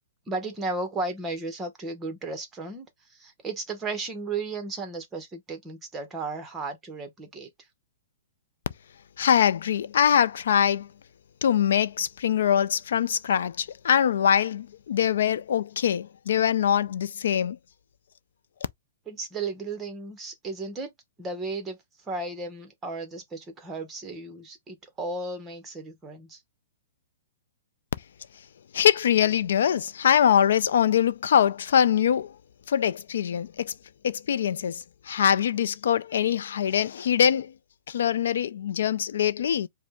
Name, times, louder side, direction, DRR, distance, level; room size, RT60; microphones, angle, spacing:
voice 1, 0.3-7.5 19.1-20.9 21.2-21.8 22.1-26.4, right 3 dB, 10° right, 0.8 m, -34 dB
voice 2, 9.2-10.9 11.4-17.6 28.7-32.3 32.7-33.7 34.0-37.5 37.9-39.7, left 9 dB, 70° left, 0.4 m, -23 dB
5.0 x 2.1 x 3.5 m
hypercardioid pair, 170°, 0 cm